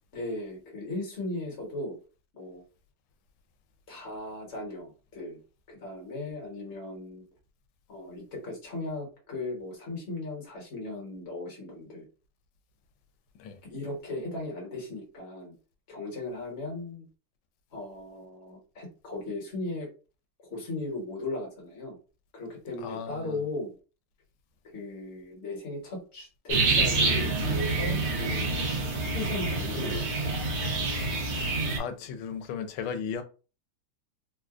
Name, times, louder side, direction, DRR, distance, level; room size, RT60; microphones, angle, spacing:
voice 1, 0.1-2.0 2.3-2.6 3.9-5.4 5.7-7.2 7.9-12.1 13.6-15.5 15.9-17.1 17.7-19.9 20.4-22.0 22.3-23.7 24.7-28.5 29.1-30.3, left 2 dB, 40° left, 1.3 m, -37 dB
voice 2, 22.8-23.4 31.8-33.2, left 7 dB, 85° left, 1.4 m, -35 dB
sound 1, 26.5-31.8, right 3 dB, 70° right, 1.5 m, -27 dB
3.8 x 2.3 x 2.4 m
omnidirectional pair, 2.2 m